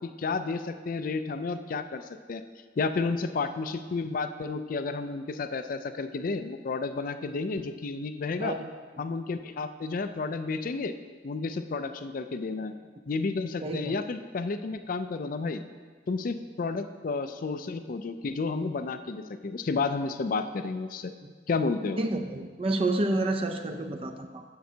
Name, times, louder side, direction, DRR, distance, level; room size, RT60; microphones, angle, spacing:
voice 1, 0.0-2.4 2.8-8.6 9.0-10.9 11.2-12.7 13.1-15.6 16.1-21.1 21.5-22.0, left 4 dB, 50° left, 9 dB, 0.4 m, -31 dB
voice 2, 13.6-14.0 21.2-21.3 22.0-24.4, right 2 dB, 30° right, 6 dB, 0.5 m, -29 dB
10.5 x 7.6 x 2.8 m, 1.5 s
head